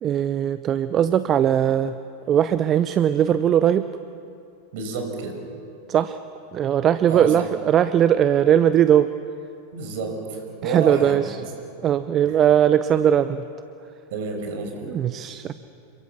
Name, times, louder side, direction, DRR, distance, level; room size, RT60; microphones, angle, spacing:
voice 1, 0.0-2.0 2.3-3.8 5.9-6.2 6.5-9.1 10.6-11.4 11.8-13.5 14.9-15.5, right 10 dB, 30° right, 13 dB, 0.7 m, -19 dB
voice 2, 4.7-5.4 7.0-7.4 9.7-11.2 12.2-12.4 14.1-15.0, right 4 dB, 50° right, 4 dB, 5.9 m, -30 dB
28.5 x 23.5 x 7.1 m, 2.6 s
figure-of-eight pair, 90°, 0 cm